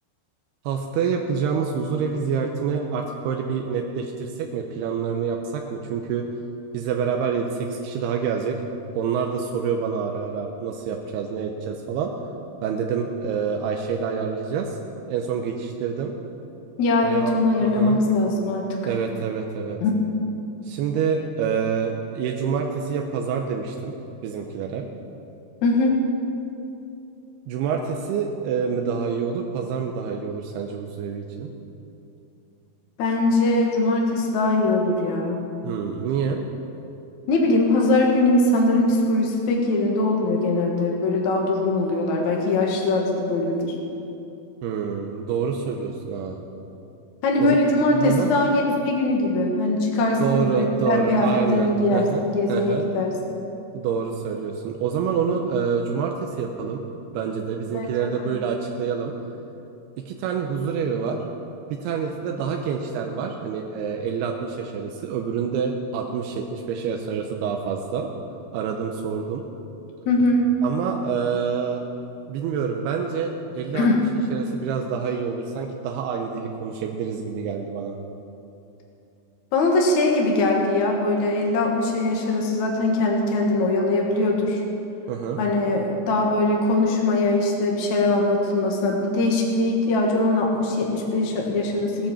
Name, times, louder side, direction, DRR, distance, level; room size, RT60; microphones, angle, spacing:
voice 1, 0.7-6.3 6.7-8.6 8.9-12.1 12.6-14.8 15.1-16.1 17.0-18.0 18.8-19.8 20.6-23.9 24.2-24.9 27.5-31.5 35.6-36.4 44.6-46.5 47.4-47.6 47.9-48.3 50.2-52.9 53.7-56.8 57.1-59.1 60.1-61.2 61.7-68.1 68.5-69.4 70.6-71.9 72.3-74.0 74.3-78.0 85.1-85.4, right 6 dB, 85° right, 2 dB, 2.8 m, -27 dB
voice 2, 16.8-18.7 19.8-20.1 25.6-26.0 33.0-35.4 37.3-43.7 47.2-53.1 57.7-57.9 58.2-58.3 70.1-70.4 73.7-74.0 79.5-84.6 85.4-92.1, left 2 dB, 55° left, -1 dB, 2.5 m, -21 dB
18.0 x 10.5 x 7.1 m, 2.8 s
omnidirectional pair, 4.6 m